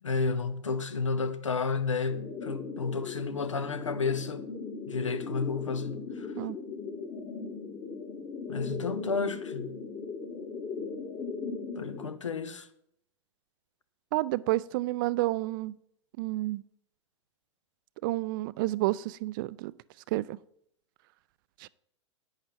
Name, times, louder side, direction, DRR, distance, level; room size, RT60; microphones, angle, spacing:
voice 1, 0.0-4.4 4.9-6.3 8.5-9.8 11.8-12.7, left 4 dB, 80° left, 0.9 m, -31 dB
sound 1, 2.1-12.1, left 4 dB, 30° left, 1.5 m, -38 dB
voice 2, 14.1-15.8 16.2-16.6 18.0-19.7 20.1-20.4 21.6-21.7, right 18 dB, 45° right, 0.4 m, -30 dB
11.0 x 8.8 x 3.5 m
figure-of-eight pair, 95°, 16 cm